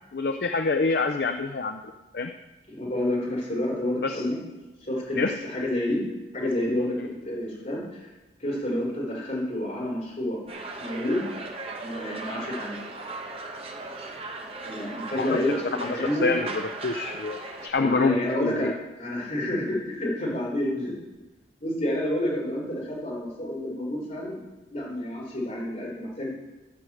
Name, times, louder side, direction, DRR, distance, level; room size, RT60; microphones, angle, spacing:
voice 1, 0.1-1.8 2.1-2.3 4.0-4.2 5.2-5.3 15.2-15.3 15.8-18.7, left 3 dB, 60° left, 6 dB, 0.5 m, -26 dB
voice 2, 2.7-4.4 4.8-6.0 6.3-8.1 8.4-10.4 10.8-11.2 11.8-12.8 14.6-16.3 17.8-20.9 21.6-24.4 24.7-26.3, left 1 dB, 45° left, -4 dB, 4.5 m, -29 dB
sound 1, 10.5-17.7, right 3 dB, 35° right, 1.1 m, -37 dB
13.0 x 5.0 x 7.7 m, 1.1 s
head